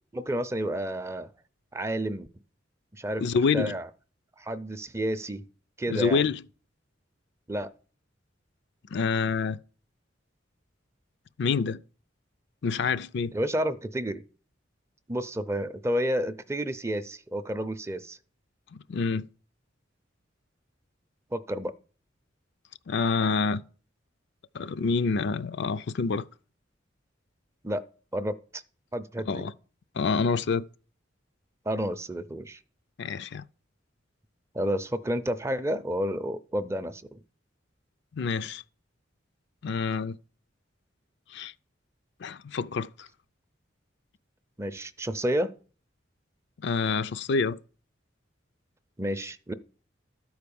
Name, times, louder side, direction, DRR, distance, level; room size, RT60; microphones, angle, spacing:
voice 1, 0.1-1.3 1.7-2.3 2.9-3.2 3.5-3.9 4.4-5.4 5.8-6.3 7.5-7.7 13.3-14.2 15.1-18.2 21.3-21.7 27.6-27.8 28.1-28.6 28.9-29.4 31.7-32.6 34.5-37.2 44.6-45.5 49.0-49.5, equal, 15° right, 0.5 m, -30 dB
voice 2, 3.2-3.7 5.9-6.4 8.9-9.6 11.4-11.8 12.6-13.3 18.7-19.3 22.9-23.6 24.5-26.3 29.3-29.5 29.9-30.6 33.0-33.4 38.1-38.6 39.6-40.2 41.3-41.5 42.2-43.1 46.6-47.6, left 5 dB, 60° left, 0.4 m, -27 dB
12.5 x 4.7 x 6.9 m
head